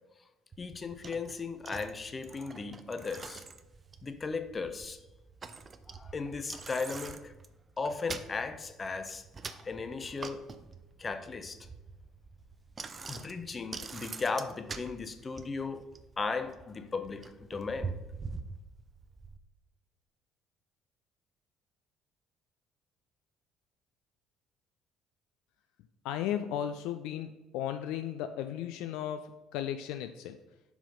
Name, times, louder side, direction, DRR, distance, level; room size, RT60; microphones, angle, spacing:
Bicycle, 0.5-19.4, right 4 dB, 30° right, 0.5 m, -45 dB
voice 1, 0.6-3.4 4.0-5.0 5.9-7.3 7.8-10.5 11.0-11.6 13.1-15.9 16.2-18.0, left 4 dB, 30° left, 10 dB, 0.7 m, -36 dB
voice 2, 26.0-30.4, left 10 dB, 65° left, 8 dB, 0.4 m, -35 dB
5.7 x 4.8 x 5.2 m, 1.0 s
figure-of-eight pair, 50°, 0 cm